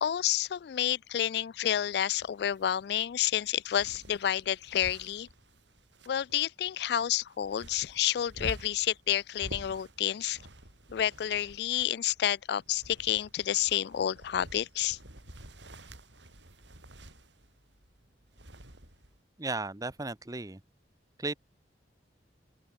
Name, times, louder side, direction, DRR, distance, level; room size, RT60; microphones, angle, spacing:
voice 1, 0.0-5.3 6.1-10.4 10.9-15.0, left 11 dB, 65° left, 0.3 m, -29 dB
sound 1, 1.7-19.2, right 1 dB, 85° right, 7.4 m, -50 dB
voice 2, 19.4-20.6 21.2-21.3, right 3 dB, 20° right, 0.9 m, -35 dB
open air
head